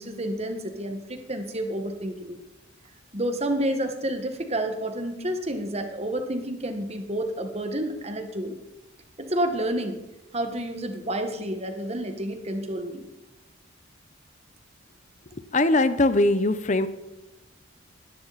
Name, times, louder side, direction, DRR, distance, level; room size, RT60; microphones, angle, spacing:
voice 1, 0.0-2.4 3.1-8.6 9.2-10.0 10.3-13.1, right 1 dB, 30° right, 6 dB, 1.6 m, -29 dB
voice 2, 15.5-16.9, left 2 dB, 35° left, 13 dB, 0.9 m, -21 dB
18.5 x 13.5 x 4.2 m, 0.99 s
head